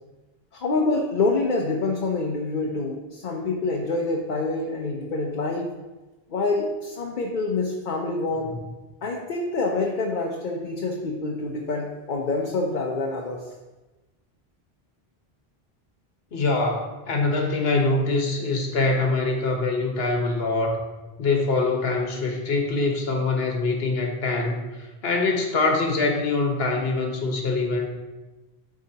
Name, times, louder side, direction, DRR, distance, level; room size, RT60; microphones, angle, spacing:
voice 1, 0.5-5.7 6.3-8.6 9.0-13.5, left 3 dB, 55° left, 0 dB, 0.9 m, -26 dB
voice 2, 16.3-20.8 21.2-27.9, left 3 dB, 70° left, 2 dB, 1.4 m, -24 dB
12.5 x 4.6 x 2.8 m, 1.1 s
omnidirectional pair, 1.0 m